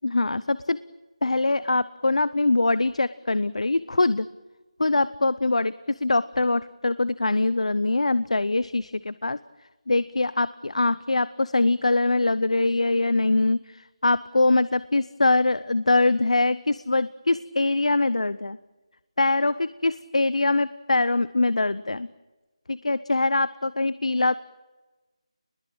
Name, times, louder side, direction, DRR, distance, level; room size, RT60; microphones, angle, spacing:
voice 1, 0.0-0.8 1.2-4.3 4.8-9.4 9.9-18.6 19.2-22.1 22.7-24.3, left 2 dB, 80° left, 17 dB, 0.8 m, -23 dB
28.5 x 21.0 x 8.8 m, 1.2 s
figure-of-eight pair, 175°, 3 cm